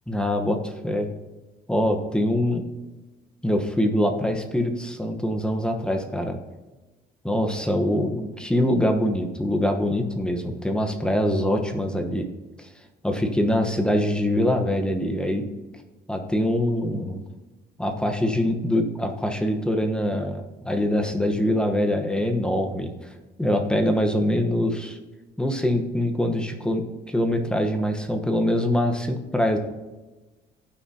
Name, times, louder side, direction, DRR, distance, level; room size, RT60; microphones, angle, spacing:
voice 1, 0.1-1.1 1.7-2.7 3.4-6.4 7.2-12.2 13.0-15.4 16.1-17.2 17.8-22.9 23.4-25.0 25.4-26.8 27.1-29.6, left 1 dB, 5° left, 4 dB, 1.1 m, -24 dB
15.5 x 6.1 x 2.8 m, 1.1 s
cardioid pair, 110°, 17 cm